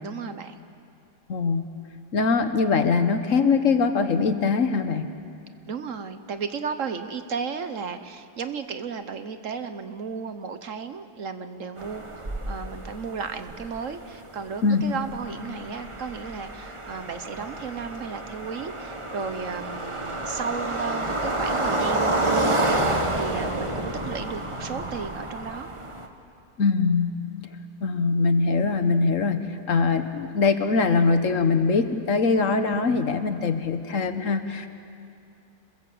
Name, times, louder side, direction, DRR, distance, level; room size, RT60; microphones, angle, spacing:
voice 1, 0.0-0.6 5.6-25.7, right 5 dB, 55° right, 9 dB, 1.2 m, -34 dB
voice 2, 1.3-1.7 2.1-5.1 14.6-14.8 26.6-27.1 27.8-34.7, left 4 dB, 55° left, 9 dB, 1.4 m, -22 dB
sound 1, 11.8-26.1, right 2 dB, 20° right, 1.4 m, -29 dB
27.5 x 21.5 x 7.9 m, 2.5 s
omnidirectional pair, 1.7 m